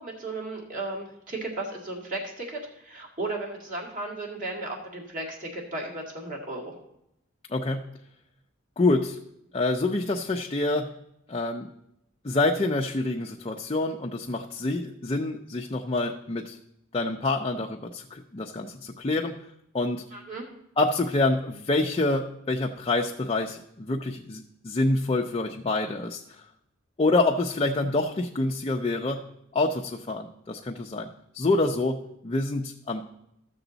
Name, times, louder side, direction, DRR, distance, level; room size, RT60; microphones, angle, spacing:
voice 1, 0.0-6.8 20.1-20.5, right 2 dB, 40° right, -2 dB, 2.1 m, -35 dB
voice 2, 7.5-7.9 8.8-9.2 9.5-10.9 11.3-11.7 12.2-16.6 16.9-19.3 19.7-20.0 20.8-26.2 27.0-29.2 29.5-33.0, left 2 dB, 30° left, 1 dB, 0.5 m, -27 dB
14.0 x 6.9 x 4.0 m, 0.81 s
head